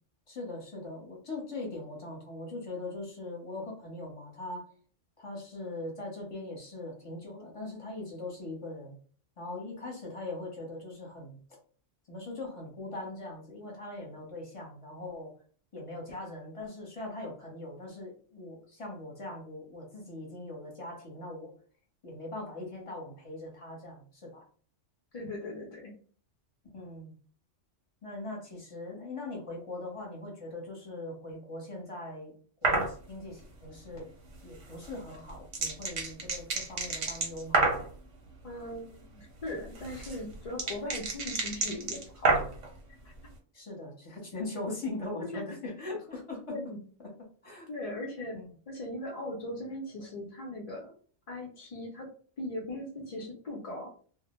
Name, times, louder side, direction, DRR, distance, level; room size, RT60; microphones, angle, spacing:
voice 1, 0.3-4.7 5.2-9.0 9.4-11.4 12.1-15.3 15.7-21.5 22.0-24.4 26.7-27.1 28.0-32.3 32.6-34.1 34.4-37.6 43.5-46.6 47.0-47.1 47.4-47.7 48.3-48.5, left 2 dB, 30° left, -1 dB, 0.8 m, -41 dB
voice 2, 25.1-25.9 38.4-42.4 43.0-43.1 45.3-45.4 46.5-46.8 47.7-48.4 48.7-50.9 51.3-52.1 52.4-53.9, left 1 dB, 55° left, -1 dB, 0.4 m, -39 dB
sound 1, 32.6-32.9 34.8-37.9 39.5-42.7, right 3 dB, 80° right, 1.0 m, -29 dB
2.1 x 2.1 x 2.9 m, 0.43 s
omnidirectional pair, 1.2 m